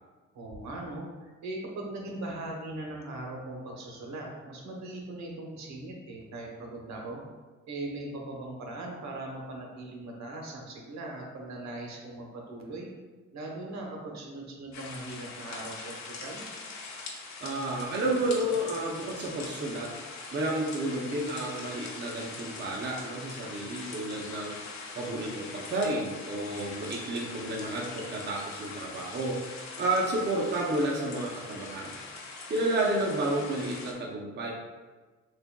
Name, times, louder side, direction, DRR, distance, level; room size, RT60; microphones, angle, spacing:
voice 1, 0.3-7.2 7.7-12.9 13.3-16.4, right 2 dB, 65° right, -1 dB, 1.0 m, -40 dB
sound 1, 14.7-33.9, left 4 dB, 65° left, 0.8 m, -42 dB
voice 2, 17.4-19.9 20.3-24.6 24.9-29.4 29.8-32.0 32.5-34.5, right 1 dB, 35° right, -2 dB, 0.6 m, -31 dB
6.5 x 2.3 x 2.2 m, 1.3 s
cardioid pair, 90°, 30 cm